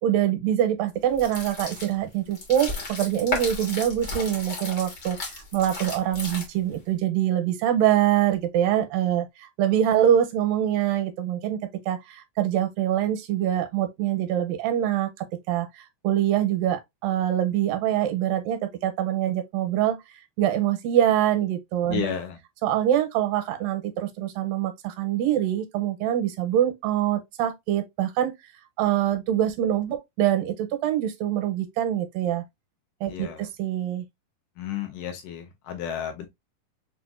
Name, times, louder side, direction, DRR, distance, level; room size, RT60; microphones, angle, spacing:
voice 1, 0.0-5.2 5.5-11.6 11.9-15.7 16.0-20.0 20.4-22.1 22.6-28.3 28.8-32.4 33.0-34.0, right 11 dB, 80° right, 2.3 m, -24 dB
sound 1, 1.1-6.8, left 3 dB, 50° left, 1.1 m, -34 dB
voice 2, 21.9-22.4 33.1-33.5 34.6-36.3, left 8 dB, 75° left, 2.1 m, -32 dB
6.1 x 2.4 x 2.3 m
omnidirectional pair, 4.0 m